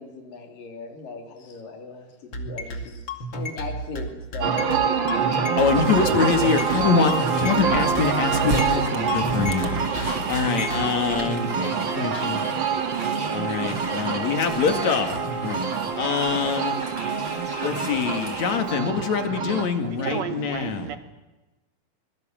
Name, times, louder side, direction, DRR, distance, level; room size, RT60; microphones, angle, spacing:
voice 1, 0.0-3.1 3.3-5.1 5.5-5.6, left 3 dB, 80° left, 4.9 m, -39 dB
sound 1, 2.3-10.9, left 1 dB, 40° left, 2.7 m, -31 dB
sound 2, 4.4-19.7, right 6 dB, 45° right, 1.9 m, -26 dB
voice 2, 5.6-12.4 13.3-16.7 17.6-20.9, left 5 dB, 60° left, 3.3 m, -25 dB
sound 3, 5.7-18.6, right 1 dB, 20° right, 4.4 m, -38 dB
voice 3, 20.0-21.0, right 8 dB, 65° right, 1.9 m, -31 dB
25.5 x 22.0 x 7.6 m
omnidirectional pair, 3.9 m